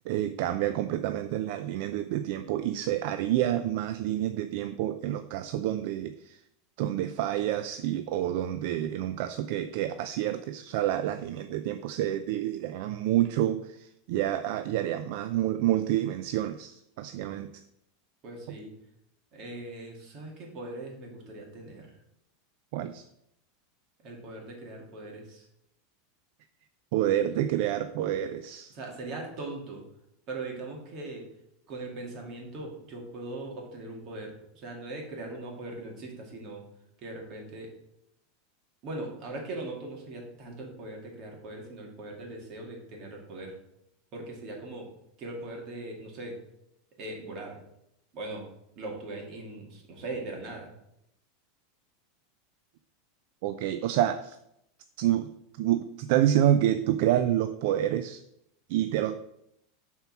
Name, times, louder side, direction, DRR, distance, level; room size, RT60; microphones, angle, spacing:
voice 1, 0.1-6.4 6.8-17.5 22.7-23.1 26.9-28.7 53.4-54.4 55.0-55.3 55.6-58.2 58.7-59.2, right 12 dB, 60° right, 10 dB, 0.4 m, -28 dB
voice 2, 18.2-18.7 19.3-21.9 24.0-25.5 28.7-29.8 30.3-31.3 31.7-36.6 37.0-37.7 38.8-43.6 44.1-44.9 45.2-46.4 47.0-47.6 48.1-48.5 48.8-50.7, right 2 dB, 40° right, 0 dB, 2.4 m, -40 dB
7.0 x 4.4 x 5.9 m, 0.79 s
supercardioid pair, 150°, 0 cm